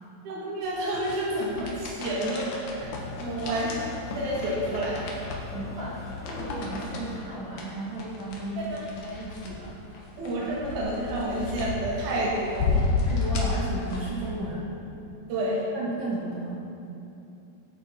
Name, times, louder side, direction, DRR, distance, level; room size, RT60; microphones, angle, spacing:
voice 1, 0.2-2.5 2.8-2.9 3.2-3.8 4.1-5.1 8.6-8.8 10.2-12.8 15.3-15.6, right 1 dB, 60° right, -6 dB, 3.4 m, -29 dB
sound 1, 0.6-14.3, left 3 dB, 65° left, 2.8 m, -33 dB
sound 2, 2.8-7.2, left 5 dB, 85° left, 3.3 m, -41 dB
voice 2, 5.5-9.7 10.4-10.5 13.1-14.7 15.7-16.6, right 2 dB, 40° right, -6 dB, 2.3 m, -34 dB
13.0 x 9.7 x 4.5 m, 2.7 s
omnidirectional pair, 4.2 m